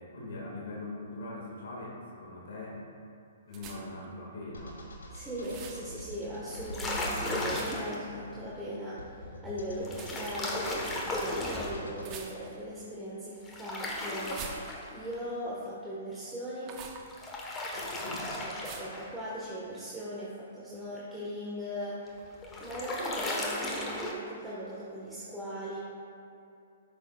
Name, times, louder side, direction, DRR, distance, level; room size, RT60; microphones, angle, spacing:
voice 1, 0.0-2.8 3.5-4.8 17.7-18.3, left 2 dB, 70° left, -4 dB, 1.8 m, -41 dB
sound 1, 3.5-4.0 5.4-5.9 7.5-8.0 9.9-10.2 12.0-12.7 14.2-15.1 16.6-17.1 18.6-19.0, right 6 dB, 30° right, 0.8 m, -45 dB
sound 2, 4.5-12.2, equal, 85° left, 1.5 m, -44 dB
voice 2, 5.1-16.8 18.4-22.2 22.6-25.8, equal, 10° right, -9 dB, 1.3 m, -39 dB
sound 3, 6.5-8.0 9.8-11.8 13.5-15.1 17.0-19.1 22.1-24.1, left 1 dB, 15° left, 1.1 m, -35 dB
13.0 x 6.2 x 2.3 m, 2.7 s
hypercardioid pair, 130°, 0 cm